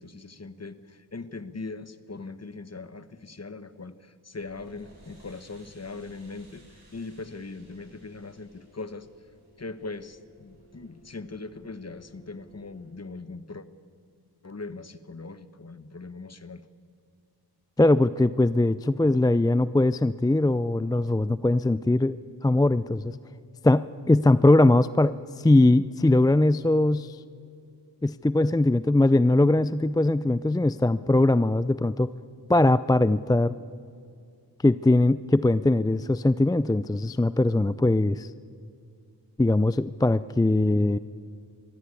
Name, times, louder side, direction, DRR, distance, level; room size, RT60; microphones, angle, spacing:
voice 1, 0.0-9.1 9.6-13.7 14.4-16.7, left 3 dB, 40° left, 13 dB, 1.1 m, -40 dB
sound 1, 4.4-12.9, right 1 dB, 65° right, 6.9 m, -57 dB
voice 2, 17.8-22.2 22.4-23.2 23.6-27.2 28.0-32.1 32.5-33.5 34.6-38.3 39.4-41.0, left 2 dB, 10° left, 16 dB, 0.4 m, -21 dB
22.0 x 15.0 x 8.4 m, 2.4 s
cardioid pair, 40°, 42 cm